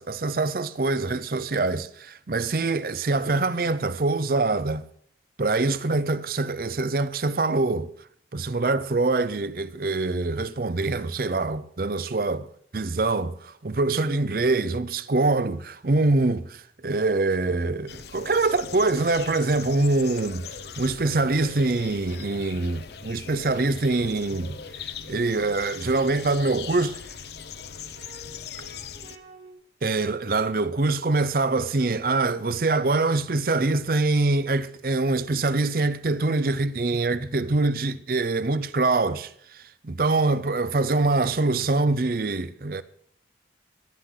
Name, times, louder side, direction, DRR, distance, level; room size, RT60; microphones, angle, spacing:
voice 1, 0.0-4.8 5.4-7.9 8.3-20.5 20.8-27.0 29.8-42.8, right 3 dB, 50° right, 0.6 m, -24 dB
sound 1, 17.9-29.2, left 7 dB, 65° left, 0.7 m, -40 dB
sound 2, 23.9-29.5, right 1 dB, 85° right, 2.8 m, -50 dB
21.0 x 9.9 x 3.8 m
head